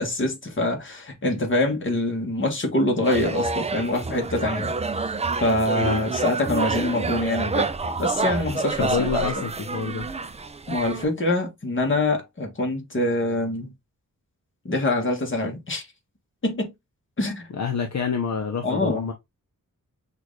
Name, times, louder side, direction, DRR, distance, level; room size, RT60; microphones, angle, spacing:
voice 1, 0.0-4.7 5.0-5.1 5.4-7.7 8.0-9.3 10.7-13.7 14.6-15.8 16.4-16.7 17.2-17.5 18.6-19.0, left 2 dB, 35° left, 1.3 m, -25 dB
sound 1, 3.0-11.0, right 3 dB, 20° right, 0.4 m, -28 dB
voice 2, 8.8-10.1 17.5-19.1, left 5 dB, 55° left, 0.8 m, -27 dB
6.1 x 2.5 x 3.1 m
wide cardioid pair, 150°, 33 cm